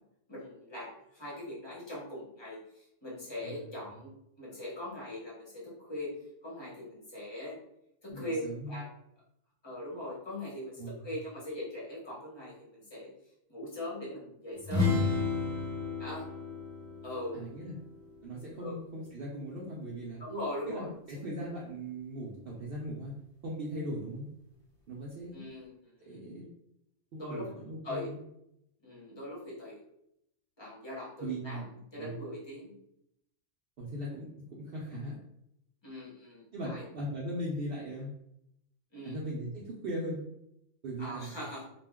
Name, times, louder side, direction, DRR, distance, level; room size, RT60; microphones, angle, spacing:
voice 1, 0.3-2.6 3.0-4.1 4.4-6.1 6.4-7.6 8.0-8.9 9.6-13.1 13.5-14.9 16.0-16.3 17.0-17.3 18.6-18.8 20.2-20.9 25.3-25.8 26.0-26.2 27.2-27.5 27.8-28.1 28.8-29.8 30.6-31.6 31.9-32.7 35.8-36.9 38.9-39.2 41.0-41.6, left 1 dB, 25° left, -6 dB, 0.6 m, -41 dB
voice 2, 8.1-8.9 10.8-11.2 17.3-17.8 18.2-20.2 20.7-23.1 23.4-24.3 24.9-25.5 26.1-26.5 27.1-28.2 31.2-31.6 32.0-32.3 33.8-35.2 36.5-38.1 39.0-40.2 40.8-41.4, right 1 dB, 85° right, -4 dB, 0.5 m, -39 dB
sound 1, 14.6-18.4, left 4 dB, 5° left, 1.0 m, -32 dB
2.4 x 2.2 x 3.4 m, 0.79 s
omnidirectional pair, 1.6 m